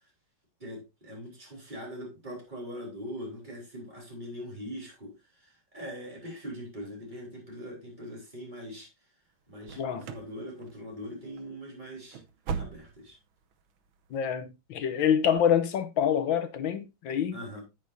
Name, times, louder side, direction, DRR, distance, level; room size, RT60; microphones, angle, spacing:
voice 1, 0.6-5.1 5.4-8.9 9.5-12.2 12.6-13.2 17.3-17.6, equal, 20° right, 3.9 m, -41 dB
sound 1, 9.6-10.4 10.6-11.1 11.4-11.5 11.9-13.2 13.5-13.6 14.1-14.2, right 6 dB, 90° right, 1.6 m, -38 dB
voice 2, 14.1-17.4, left 8 dB, 80° left, 1.7 m, -26 dB
9.8 x 8.5 x 2.6 m
omnidirectional pair, 2.1 m